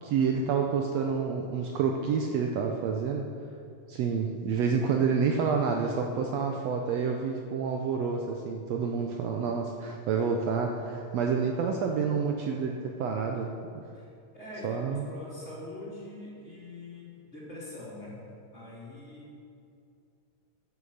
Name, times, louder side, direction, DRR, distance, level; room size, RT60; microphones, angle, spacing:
voice 1, 0.0-3.3 3.9-13.8 14.6-15.1, right 6 dB, 75° right, 2 dB, 1.7 m, -28 dB
voice 2, 14.3-18.2 18.5-19.4, left 1 dB, 20° left, -7 dB, 3.3 m, -43 dB
10.0 x 9.9 x 6.5 m, 2.5 s
omnidirectional pair, 3.4 m